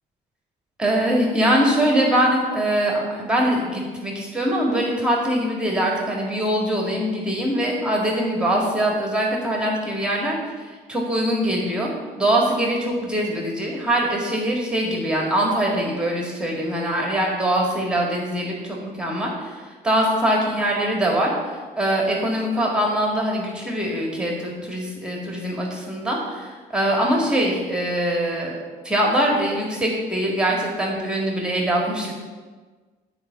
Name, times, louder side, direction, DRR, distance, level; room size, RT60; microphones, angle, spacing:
voice 1, 0.8-11.9 12.2-28.6 28.8-32.1, right 1 dB, 5° right, -2 dB, 1.8 m, -23 dB
9.1 x 4.7 x 6.9 m, 1.4 s
cardioid pair, 110°, 17 cm